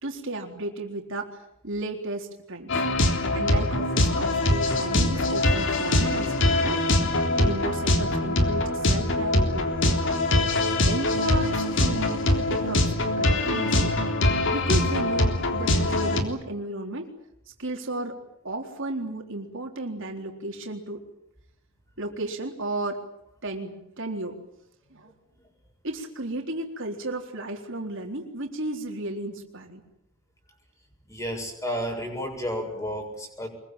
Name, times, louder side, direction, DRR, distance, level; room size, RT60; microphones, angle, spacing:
voice 1, 0.0-2.8 3.3-6.8 7.4-10.0 10.8-13.9 14.5-17.1 17.6-18.2 18.4-21.0 22.0-23.0 23.4-24.4 24.9-25.1 25.8-29.8, right 2 dB, 65° right, 2 dB, 4.0 m, -34 dB
sound 1, 2.7-16.2, left 1 dB, 60° left, 3.6 m, -23 dB
voice 2, 31.1-33.5, equal, 15° left, 3 dB, 7.5 m, -31 dB
24.5 x 23.0 x 9.0 m, 0.78 s
head